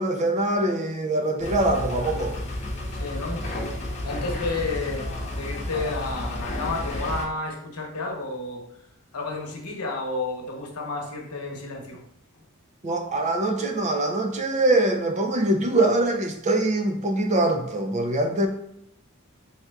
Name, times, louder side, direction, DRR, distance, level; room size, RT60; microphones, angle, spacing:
voice 1, 0.0-2.4 3.4-3.5 12.8-18.5, right 2 dB, 30° right, 0.5 m, -23 dB
sound 1, 1.4-7.3, left 1 dB, 30° left, 0.9 m, -31 dB
voice 2, 3.0-3.4 4.0-8.6 9.1-12.0, left 3 dB, 85° left, 0.9 m, -31 dB
4.2 x 3.5 x 2.3 m
head